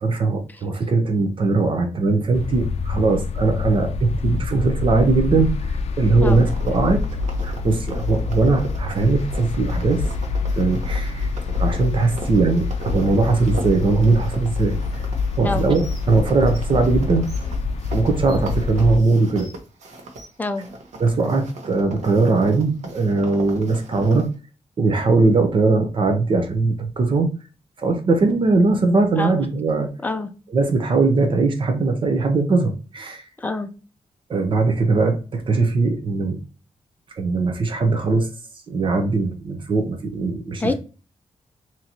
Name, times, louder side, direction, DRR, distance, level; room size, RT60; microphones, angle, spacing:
voice 1, 0.0-5.5 6.0-7.0 7.4-10.0 10.6-11.3 11.6-14.8 15.4-17.3 17.9-19.5 21.0-24.3 24.8-27.3 27.8-29.9 30.5-33.2 34.3-36.4 37.2-38.3 38.7-40.7, right 3 dB, 45° right, 6 dB, 0.7 m, -20 dB
sound 1, 2.3-19.0, left 4 dB, 65° left, 0.4 m, -26 dB
sound 2, 6.3-20.3 20.5-24.3, right 2 dB, 90° right, 1.1 m, -39 dB
Bird, 15.7-16.0 16.5-16.6 17.3-17.4 18.3-18.5 19.4-19.5 20.2-20.3, right 1 dB, 30° right, 1.4 m, -44 dB
voice 2, 33.4-33.7 40.6-40.7, left 2 dB, 15° left, 7 dB, 0.5 m, -25 dB
3.8 x 2.9 x 2.9 m, 0.34 s
wide cardioid pair, 135°, 12 cm